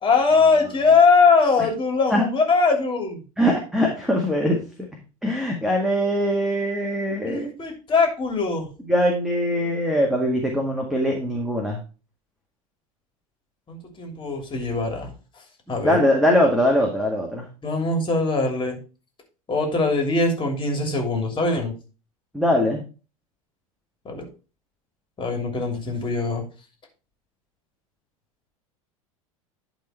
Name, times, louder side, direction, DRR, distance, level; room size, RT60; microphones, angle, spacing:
voice 1, 0.0-3.2 7.3-8.7 13.7-15.1 15.7-16.0 17.6-18.8 19.5-21.7 24.0-24.2 25.2-26.4, left 4 dB, 25° left, 3 dB, 3.0 m, -21 dB
voice 2, 3.4-4.6 5.2-7.5 8.9-11.8 15.8-17.5 22.3-22.8, equal, ahead, 0 dB, 1.8 m, -21 dB
11.5 x 4.0 x 4.3 m, 0.33 s
figure-of-eight pair, 75°, 18 cm